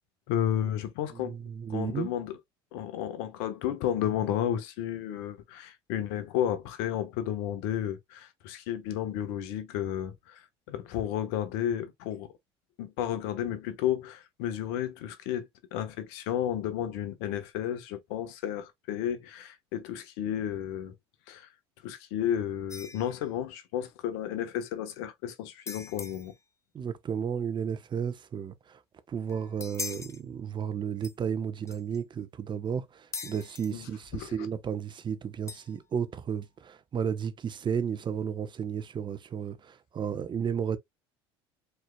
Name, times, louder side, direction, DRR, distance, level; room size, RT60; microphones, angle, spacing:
voice 1, 0.3-1.4 1.7-2.4 2.7-12.3 12.8-20.9 21.3-21.5 21.8-26.3 33.7-34.5, left 10 dB, 75° left, 1.3 m, -32 dB
voice 2, 1.1-2.1 26.7-28.8 29.1-40.8, right 7 dB, 35° right, 1.0 m, -33 dB
sound 1, 22.7-23.3 25.7-26.4 29.3-30.2 31.0-31.1 31.7-32.0 33.1-33.7 35.5-36.0, left 4 dB, 20° left, 0.8 m, -41 dB
4.7 x 4.5 x 2.3 m
hypercardioid pair, 85°, 13 cm